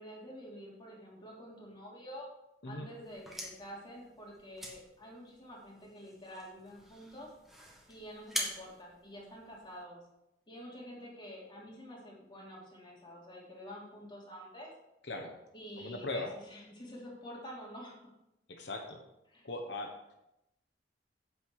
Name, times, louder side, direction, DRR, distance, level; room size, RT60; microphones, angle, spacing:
voice 1, 0.0-2.3 2.7-7.3 7.9-10.0 10.5-14.7 15.5-17.9 19.3-19.5, equal, 25° left, -4 dB, 3.4 m, -48 dB
sound 1, 3.0-9.8, equal, ahead, 1.7 m, -44 dB
voice 2, 15.8-16.3 18.5-19.0 19.4-19.9, left 2 dB, 75° left, 3 dB, 1.2 m, -39 dB
9.2 x 8.0 x 4.9 m, 0.87 s
head